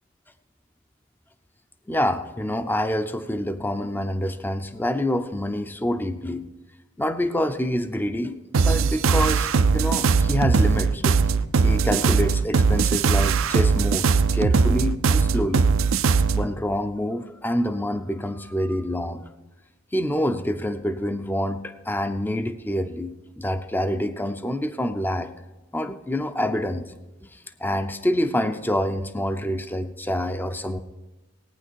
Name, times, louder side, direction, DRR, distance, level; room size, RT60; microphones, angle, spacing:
voice 1, 1.9-6.4 7.0-11.3 11.6-15.7 16.3-19.2 19.9-25.3 25.7-26.9 27.2-30.8, left 1 dB, 10° left, 10 dB, 0.5 m, -27 dB
sound 1, 8.5-16.5, right 4 dB, 75° right, 0.5 m, -20 dB
17.5 x 9.6 x 4.6 m, 1.1 s
head